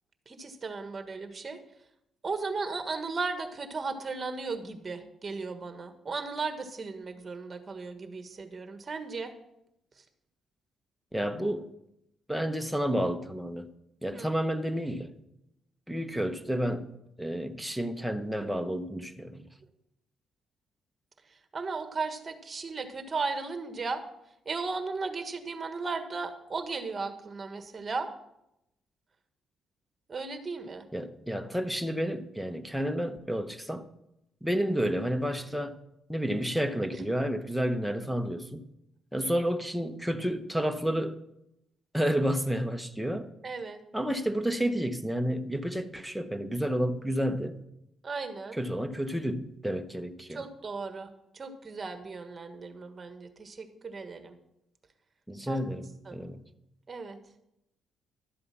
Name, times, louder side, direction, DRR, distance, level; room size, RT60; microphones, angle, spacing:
voice 1, 0.3-1.6 2.2-9.3 14.1-14.3 21.5-24.0 24.4-28.1 30.1-30.9 43.4-43.8 48.0-48.6 50.3-51.1 51.3-54.3 55.5-55.6 56.0-56.2 56.9-57.2, right 4 dB, 35° right, 1.5 m, -36 dB
voice 2, 11.1-11.7 12.3-13.7 14.0-15.1 15.9-16.9 17.2-19.4 30.9-33.9 34.4-35.8 36.1-38.7 39.1-41.2 41.9-43.3 43.9-47.6 48.5-50.5 55.3-56.5, equal, ahead, 0.9 m, -30 dB
12.5 x 7.8 x 6.0 m
cardioid pair, 90°, 0 cm